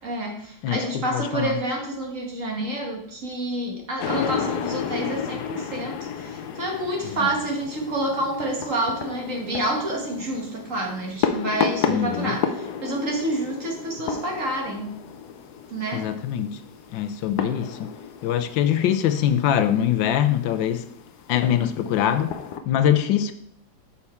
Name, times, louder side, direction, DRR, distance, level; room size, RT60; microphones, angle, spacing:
voice 1, 0.0-15.0 15.7-16.1, right 1 dB, 45° right, 1.6 m, -28 dB
voice 2, 0.6-1.6 7.0-7.3 11.9-12.4 15.9-16.6 16.9-17.9 18.2-20.9 21.3-22.4 22.7-23.3, left 10 dB, 85° left, 1.3 m, -23 dB
sound 1, 4.0-22.6, left 7 dB, 70° left, 1.1 m, -32 dB
6.7 x 5.9 x 4.3 m
omnidirectional pair, 2.1 m